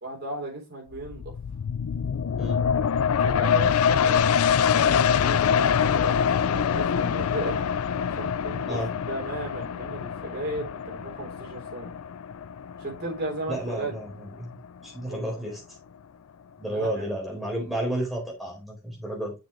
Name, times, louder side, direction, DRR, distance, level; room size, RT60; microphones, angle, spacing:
voice 1, 0.0-1.3 3.2-4.3 4.7-7.7 8.0-11.9 12.8-13.9 15.1-15.4 16.6-17.0, right 1 dB, 50° right, 3.5 m, -35 dB
sound 1, 0.9-14.2 14.6-14.7, left 7 dB, 85° left, 0.4 m, -25 dB
voice 2, 13.5-14.6 14.8-15.6 16.6-19.3, right 1 dB, ahead, 4.2 m, -31 dB
7.1 x 6.2 x 3.1 m
head